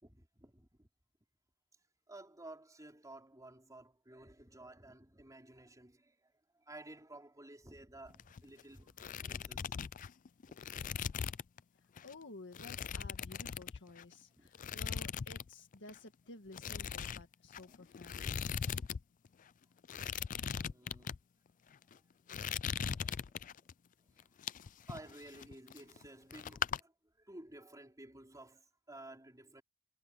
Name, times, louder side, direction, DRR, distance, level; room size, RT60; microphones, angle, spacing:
voice 1, 0.0-0.9 2.1-9.8 10.5-11.0 14.4-14.5 20.7-21.1 22.8-23.3 24.1-24.3 24.9-29.6, right 1 dB, 15° right, 4.2 m, -54 dB
sound 1, 8.1-8.6 8.9-11.6 12.0-12.1 12.5-14.1 14.5-15.5 15.7-16.0 16.5-19.0 19.2-19.3 19.8-21.2 21.7-22.0 22.3-23.7 24.2-26.1 26.3-26.8, left 7 dB, 35° left, 0.4 m, -40 dB
voice 2, 11.7-18.5, left 2 dB, 55° left, 1.8 m, -53 dB
head